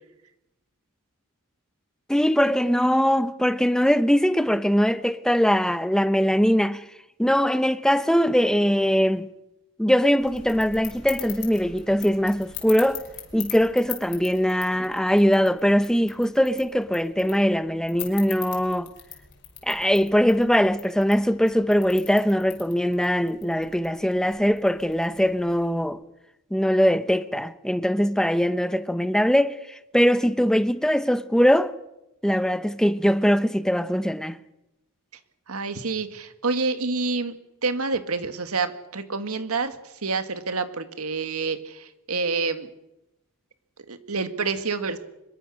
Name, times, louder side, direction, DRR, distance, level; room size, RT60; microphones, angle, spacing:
voice 1, 2.1-6.8 7.2-9.3 9.8-13.0 13.3-18.9 19.6-26.0 26.5-31.7 32.2-34.4, equal, 5° left, 0.8 m, -21 dB
sound 1, 10.2-25.9, left 10 dB, 55° left, 5.7 m, -42 dB
voice 2, 35.5-37.4 37.6-42.7 43.9-45.0, right 4 dB, 85° right, 2.0 m, -28 dB
25.0 x 22.0 x 6.4 m
head